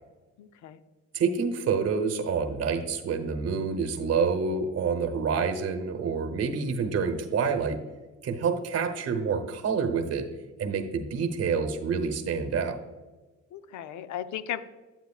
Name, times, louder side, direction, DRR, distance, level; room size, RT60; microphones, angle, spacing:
voice 1, 0.4-0.8 13.5-14.6, left 10 dB, 75° left, 12 dB, 0.6 m, -36 dB
voice 2, 1.1-7.8 8.2-10.3 10.6-12.8, right 5 dB, 55° right, 5 dB, 0.9 m, -27 dB
9.5 x 7.4 x 2.4 m, 1.2 s
cardioid pair, 90°, 30 cm